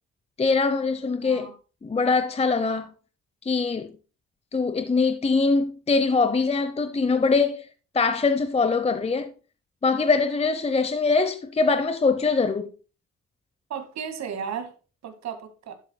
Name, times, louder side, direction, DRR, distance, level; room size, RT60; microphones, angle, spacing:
voice 1, 0.4-1.5 1.8-2.9 3.4-3.9 4.5-7.7 7.9-9.3 9.8-12.7, left 4 dB, 20° left, 0.8 m, -23 dB
voice 2, 1.2-1.5 13.7-14.7 15.0-15.8, right 7 dB, 65° right, 2.0 m, -34 dB
11.5 x 7.7 x 2.3 m
cardioid pair, 90°, 30 cm